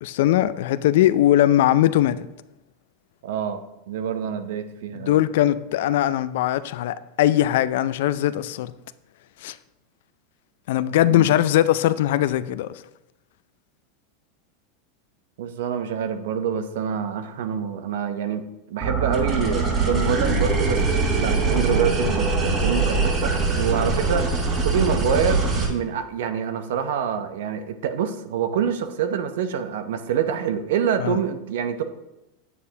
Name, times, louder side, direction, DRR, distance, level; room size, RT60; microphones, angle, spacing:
voice 1, 0.0-2.2 4.9-8.7 9.4-9.6 10.7-12.7 31.0-31.2, left 13 dB, 70° left, 0.4 m, -20 dB
voice 2, 3.2-5.2 11.1-11.3 15.4-20.8 21.2-31.8, right 8 dB, 70° right, 0.7 m, -26 dB
sound 1, 18.8-25.6, right 3 dB, 35° right, 3.3 m, -22 dB
9.2 x 8.4 x 2.8 m
hypercardioid pair, 95°, 0 cm